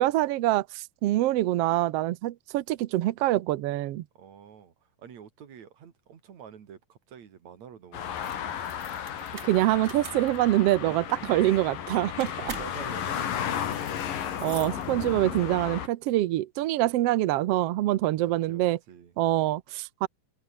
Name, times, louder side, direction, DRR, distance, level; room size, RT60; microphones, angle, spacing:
voice 1, 0.0-4.0 9.4-12.5 14.4-18.8 19.2-20.1, right 15 dB, 80° right, 1.4 m, -25 dB
voice 2, 4.2-8.6 10.8-11.2 12.5-14.0 18.5-19.1, right 8 dB, 60° right, 3.5 m, -48 dB
sound 1, 7.9-15.9, left 9 dB, 90° left, 4.0 m, -34 dB
sound 2, 8.1-15.4, right 4 dB, 25° right, 1.9 m, -47 dB
omnidirectional pair, 3.8 m